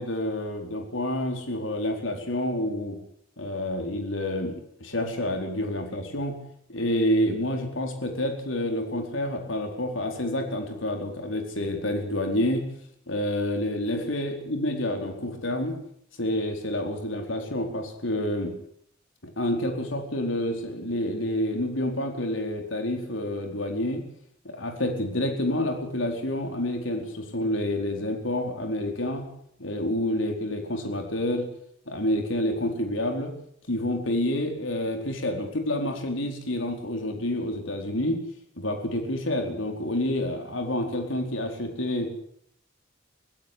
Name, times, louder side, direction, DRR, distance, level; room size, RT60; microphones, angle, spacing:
voice 1, 0.0-3.0 3.4-6.3 6.7-12.6 13.1-15.8 16.2-18.5 19.2-24.0 24.4-29.2 29.6-31.5 31.9-33.3 33.7-38.2 38.6-42.1, left 1 dB, 80° left, 4 dB, 4.4 m, -28 dB
24.0 x 16.5 x 8.2 m, 0.69 s
head